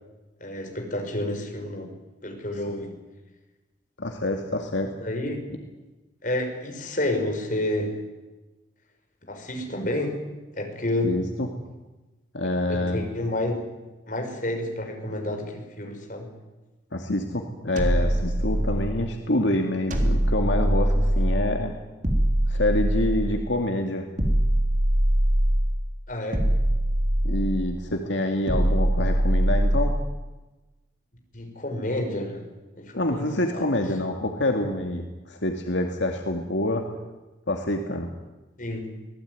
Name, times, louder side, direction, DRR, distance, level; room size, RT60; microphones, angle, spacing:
voice 1, 0.4-1.9 2.2-2.9 5.0-5.4 6.2-8.0 9.3-10.2 10.5-11.2 12.4-13.7 14.1-16.3 26.1-26.5 31.3-32.4 32.8-33.6 38.6-38.9, left 1 dB, 45° left, 3 dB, 5.6 m, -30 dB
voice 2, 4.0-4.9 11.0-11.5 12.3-13.0 16.9-21.7 22.5-24.1 27.2-29.9 33.0-36.8 37.5-38.1, left 1 dB, 75° left, 3 dB, 2.4 m, -26 dB
sound 1, 17.8-19.1 19.9-21.5 22.0-23.5 24.2-25.8 26.3-27.7 28.5-30.1, right 1 dB, 40° right, 3.6 m, -22 dB
26.0 x 19.0 x 9.6 m, 1.1 s
head